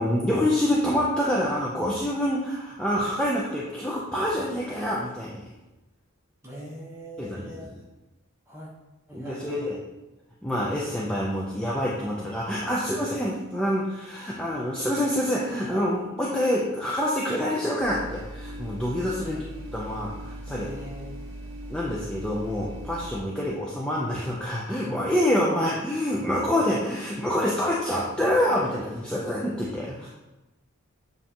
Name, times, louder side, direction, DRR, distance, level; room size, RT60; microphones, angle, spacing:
voice 1, 0.0-5.5 7.2-7.7 9.1-9.8 10.4-19.4 19.7-20.7 21.7-30.1, left 1 dB, 5° left, -5 dB, 0.3 m, -26 dB
voice 2, 6.4-7.7 8.5-8.7 9.1-9.7 19.2-19.6 20.5-21.2 23.4-23.5 25.5-25.7, equal, 10° right, -4 dB, 0.9 m, -41 dB
sound 1, 17.8-23.2, equal, 60° right, 0.7 m, -39 dB
7.1 x 2.6 x 2.8 m, 1.0 s
head